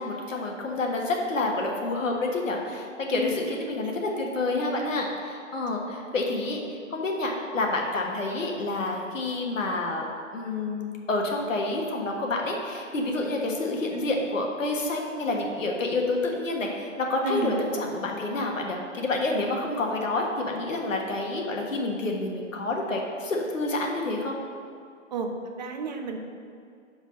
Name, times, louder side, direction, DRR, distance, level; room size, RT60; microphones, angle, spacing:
voice 1, 0.0-6.6 6.9-10.1 10.3-24.4, left 2 dB, 75° left, 0 dB, 1.4 m, -28 dB
voice 2, 3.6-4.0 17.2-18.0 25.1-25.3 25.6-26.2, right 3 dB, 35° right, 4 dB, 0.7 m, -32 dB
5.2 x 5.0 x 6.3 m, 2.3 s
hypercardioid pair, 145°, 39 cm